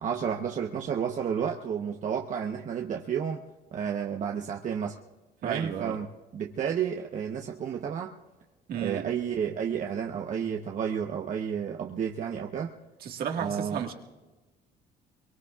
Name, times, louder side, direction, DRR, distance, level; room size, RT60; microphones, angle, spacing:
voice 1, 0.0-3.4 3.7-5.0 5.4-6.1 6.3-8.1 8.8-12.7 13.4-13.8, right 7 dB, 50° right, 1 dB, 1.0 m, -31 dB
voice 2, 5.4-5.9 8.7-9.0 13.0-13.9, right 8 dB, 65° right, 3 dB, 1.8 m, -32 dB
24.0 x 23.5 x 2.4 m, 1.1 s
cardioid pair, 110°, 17 cm